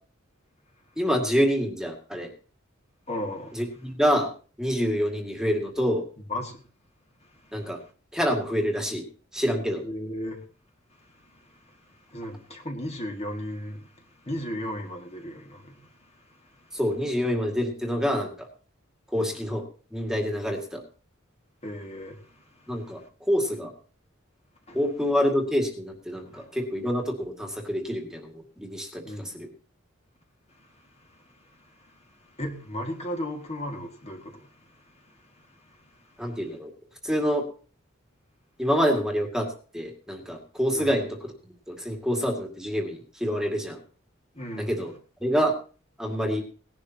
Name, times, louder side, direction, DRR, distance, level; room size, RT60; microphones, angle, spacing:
voice 1, 1.0-2.3 3.5-4.3 4.6-6.1 7.5-7.8 8.1-9.1 9.3-9.8 16.7-18.5 19.1-19.6 19.9-20.8 22.7-23.7 24.7-29.5 36.2-36.7 37.0-37.4 38.6-39.5 39.7-43.8 44.6-44.9 45.2-45.5 46.0-46.4, equal, 5° right, 2.2 m, -27 dB
voice 2, 3.1-3.6 6.3-6.6 7.2-7.7 9.8-10.5 10.9-16.8 19.1-19.3 21.6-23.1 24.7-24.8 26.1-26.5 29.0-29.4 30.5-36.4 40.7-41.0 44.3-44.9, left 1 dB, 30° left, 2.1 m, -37 dB
19.0 x 11.5 x 2.9 m
head